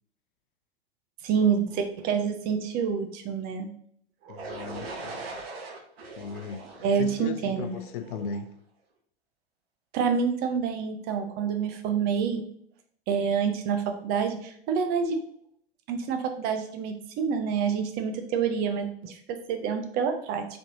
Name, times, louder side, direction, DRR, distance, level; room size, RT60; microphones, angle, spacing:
voice 1, 1.2-3.7 4.2-4.6 6.8-7.8 9.9-12.4 13.1-15.2 15.9-20.5, right 6 dB, 30° right, 0.5 m, -27 dB
voice 2, 4.3-5.1 6.2-6.7 7.0-8.5, left 6 dB, 55° left, 0.4 m, -36 dB
sound 1, 4.4-8.3, right 3 dB, 70° right, 0.9 m, -40 dB
4.0 x 3.4 x 2.7 m
hypercardioid pair, 105°, 32 cm